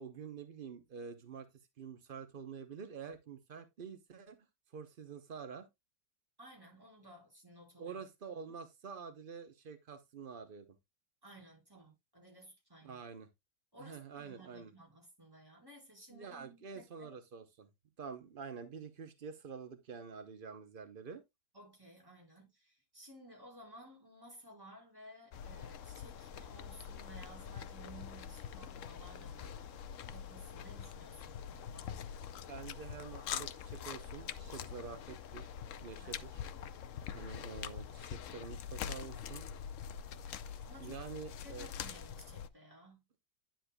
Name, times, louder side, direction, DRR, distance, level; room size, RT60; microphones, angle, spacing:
voice 1, 0.0-1.5 1.8-4.4 4.7-5.7 7.8-10.7 12.8-13.3 13.8-14.7 16.1-17.7 18.0-21.2 32.5-35.5 35.8-36.4 37.1-39.5 40.8-41.7, right 6 dB, 65° right, 0.5 m, -47 dB
voice 2, 6.4-8.0 8.5-8.6 11.2-13.0 13.7-17.1 21.5-29.5 30.1-32.1 35.9-36.2 37.1-37.2 40.6-41.1 41.4-43.0, right 1 dB, 10° right, 4.7 m, -56 dB
sound 1, 25.3-42.5, left 8 dB, 80° left, 0.6 m, -45 dB
10.0 x 7.4 x 2.2 m
omnidirectional pair, 2.1 m